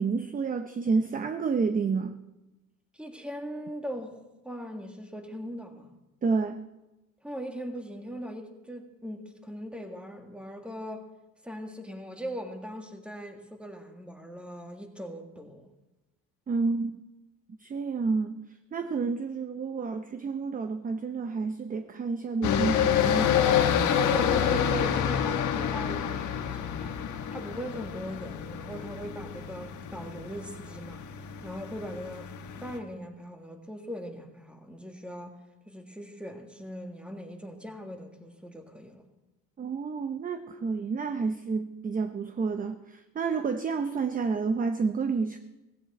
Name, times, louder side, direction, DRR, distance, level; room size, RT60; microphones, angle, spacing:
voice 1, 0.0-2.2 6.2-6.6 16.5-17.0 17.6-18.4 18.7-23.4 39.6-45.4, right 4 dB, 25° right, 9 dB, 0.7 m, -29 dB
voice 2, 2.9-6.0 7.2-11.1 11.4-15.7 24.1-27.0 27.3-31.0 31.4-32.3 32.6-35.4 35.7-39.0, equal, 5° right, 4 dB, 1.8 m, -40 dB
sound 1, 22.4-32.8, left 8 dB, 55° left, 1.5 m, -28 dB
16.5 x 16.0 x 4.2 m, 1.0 s
cardioid pair, 120°, 35 cm